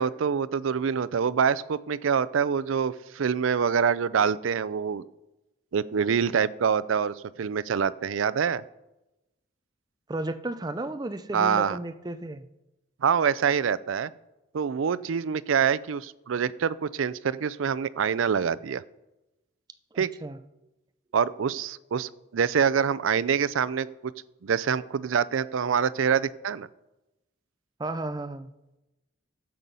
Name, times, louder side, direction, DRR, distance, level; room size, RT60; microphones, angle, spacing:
voice 1, 0.0-5.0 5.7-8.6 11.3-11.8 13.0-14.1 14.5-18.8 20.0-20.1 21.1-24.1 24.4-26.7, right 7 dB, 85° right, 17 dB, 0.4 m, -25 dB
voice 2, 10.1-12.5 19.9-20.4 27.8-28.5, right 2 dB, 20° right, 10 dB, 0.5 m, -33 dB
12.0 x 7.7 x 5.4 m, 0.98 s
head